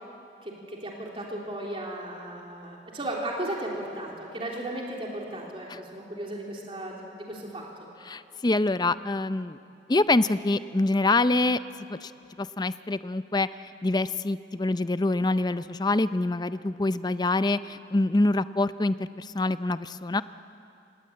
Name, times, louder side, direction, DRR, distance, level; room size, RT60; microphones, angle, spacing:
voice 1, 0.4-7.7, right 1 dB, 30° right, -2 dB, 3.3 m, -35 dB
voice 2, 8.1-9.6 9.9-11.6 11.9-12.1 12.4-13.5 13.8-20.2, left 2 dB, 25° left, 14 dB, 0.5 m, -25 dB
27.5 x 19.5 x 8.7 m, 2.7 s
head